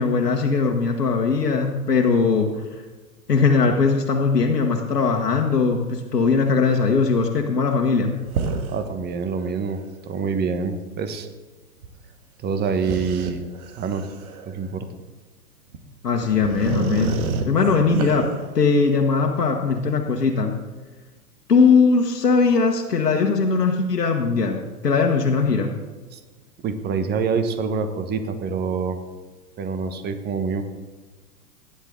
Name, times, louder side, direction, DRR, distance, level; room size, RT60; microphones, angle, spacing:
voice 1, 0.0-2.5 3.3-8.1 16.0-17.2 17.4-20.6 21.5-25.7, left 4 dB, 90° left, 2 dB, 1.4 m, -20 dB
sound 1, 8.3-8.8 9.3-9.4 11.8-11.9 12.8-14.7 15.7-15.8 16.2-18.5, right 5 dB, 65° right, 1.8 m, -28 dB
voice 2, 8.7-11.3 12.4-13.5 13.8-14.0 14.4-14.8 26.1-26.2 26.6-29.0 29.6-30.6, right 5 dB, 20° right, 8 dB, 1.2 m, -26 dB
16.0 x 10.0 x 3.8 m, 1.3 s
hypercardioid pair, 115°, 46 cm